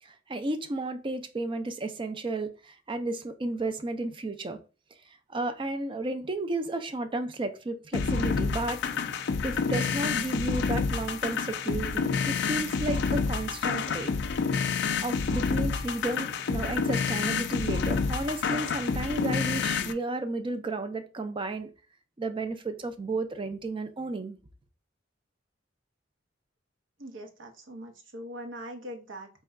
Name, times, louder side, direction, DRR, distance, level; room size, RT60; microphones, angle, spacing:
voice 1, 0.0-4.6 5.1-8.8 9.4-14.1 15.0-21.7 22.2-24.4, right 2 dB, 25° right, 0.4 m, -33 dB
sound 1, 7.9-19.9, left 5 dB, 65° left, 0.4 m, -28 dB
voice 2, 27.0-29.3, equal, 80° right, 0.8 m, -41 dB
4.1 x 2.2 x 3.5 m
head